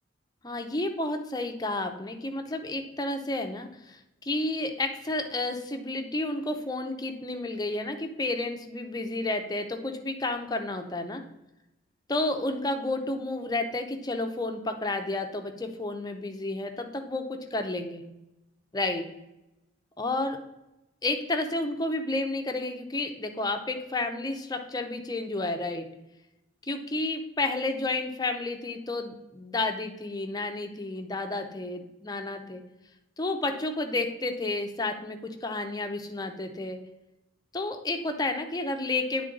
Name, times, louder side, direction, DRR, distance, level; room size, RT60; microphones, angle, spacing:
voice 1, 0.4-11.2 12.1-18.0 18.7-19.1 20.0-20.4 21.0-25.9 26.6-32.6 33.2-36.8 37.5-39.2, left 2 dB, 20° left, 5 dB, 0.6 m, -31 dB
9.0 x 3.7 x 3.8 m, 0.92 s
head